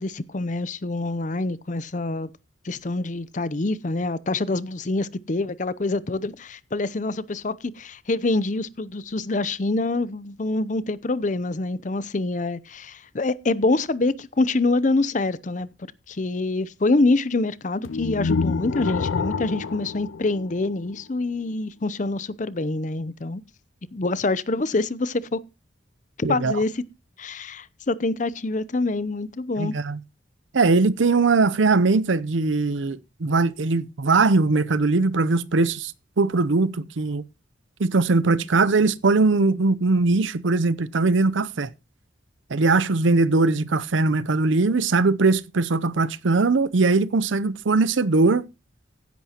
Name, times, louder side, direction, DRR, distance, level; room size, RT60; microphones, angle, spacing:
voice 1, 0.0-2.3 2.6-15.7 16.1-23.4 23.9-25.4 26.2-26.8 27.2-29.7 38.4-38.5, left 2 dB, 40° left, 0.6 m, -26 dB
sound 1, 17.8-21.0, left 4 dB, 85° left, 0.5 m, -27 dB
voice 2, 26.2-26.6 29.6-30.0 30.5-35.9 36.2-37.2 37.8-41.7 42.5-48.4, right 3 dB, 80° right, 0.6 m, -20 dB
15.5 x 10.5 x 2.9 m
head